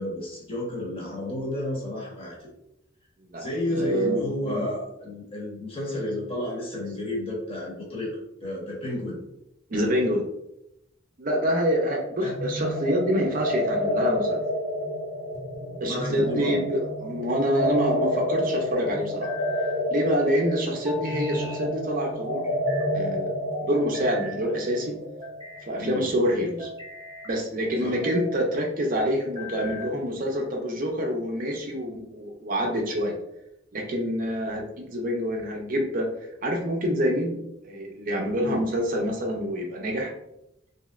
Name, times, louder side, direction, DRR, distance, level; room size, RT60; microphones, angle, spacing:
voice 1, 0.0-2.5 3.4-8.1 8.4-9.2 12.2-12.3 15.8-16.6 25.8-26.1 27.8-28.0 38.3-38.6, left 1 dB, 30° left, -4 dB, 1.0 m, -31 dB
voice 2, 3.3-4.6 9.7-10.2 11.2-14.4 15.8-19.3 19.9-22.4 22.9-24.9 25.6-26.7 27.3-33.1 33.7-36.1 36.4-37.4 37.6-40.1, equal, 45° right, 1 dB, 0.5 m, -26 dB
sound 1, 12.2-25.8, left 1 dB, 65° left, 1.0 m, -30 dB
sound 2, 15.3-16.0 17.4-18.2 19.0-19.8 20.9-21.6 22.2-22.9 23.5-24.4 25.0-25.7 26.4-27.4 27.9-28.4 29.2-30.0, left 2 dB, 15° right, 0.9 m, -40 dB
3.1 x 2.7 x 2.3 m, 0.82 s
head